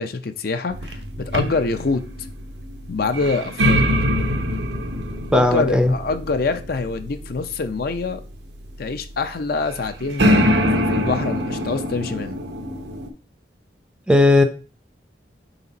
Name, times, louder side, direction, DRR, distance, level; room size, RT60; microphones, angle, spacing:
voice 1, 0.0-2.0 2.9-3.8 5.3-8.2 8.8-10.4 10.7-12.4, left 4 dB, 60° left, 0.6 m, -25 dB
sound 1, 0.7-13.1, equal, 75° right, 0.9 m, -24 dB
voice 2, 5.3-5.9 14.1-14.4, left 2 dB, 5° right, 0.5 m, -15 dB
5.8 x 4.0 x 4.0 m
head